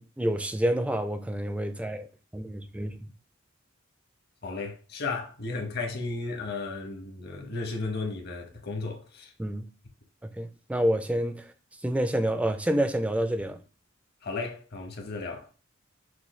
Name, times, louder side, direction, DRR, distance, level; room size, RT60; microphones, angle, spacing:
voice 1, 0.0-2.1 2.3-3.1 9.4-9.7 10.2-11.5 11.8-13.6, right 1 dB, 5° right, 0.3 m, -28 dB
voice 2, 4.4-9.3 14.2-15.5, left 3 dB, 50° left, 0.9 m, -34 dB
6.3 x 2.2 x 3.1 m
head